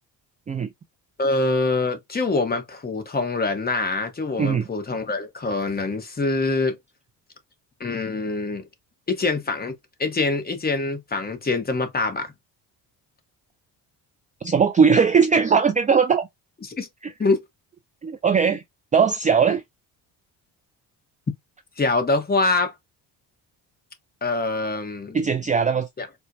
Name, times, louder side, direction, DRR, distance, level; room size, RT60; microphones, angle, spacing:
voice 1, 1.2-6.8 7.8-8.6 9.1-9.7 10.0-12.3 16.8-16.9 17.2-17.4 21.8-22.7 24.2-25.2 26.0-26.1, left 3 dB, 20° left, 1.0 m, -24 dB
voice 2, 14.4-16.3 18.0-18.6 18.9-19.6 25.1-25.9, right 6 dB, 20° right, 0.3 m, -19 dB
4.3 x 2.2 x 2.6 m
cardioid pair, 95°, 41 cm